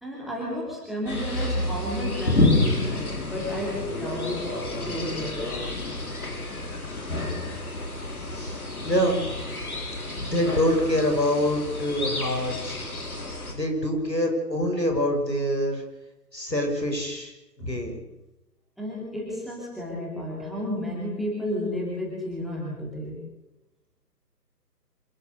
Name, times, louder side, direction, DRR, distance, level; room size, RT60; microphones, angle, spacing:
voice 1, 0.0-5.5 17.6-17.9 18.8-23.2, left 1 dB, ahead, -5 dB, 2.6 m, -32 dB
sound 1, 1.1-13.5, left 2 dB, 60° left, 5.4 m, -29 dB
voice 2, 8.2-9.4 10.2-12.8 13.5-15.8 16.3-17.9, equal, 85° left, 3 dB, 6.8 m, -26 dB
26.5 x 17.5 x 6.7 m, 0.97 s
figure-of-eight pair, 150°, 49 cm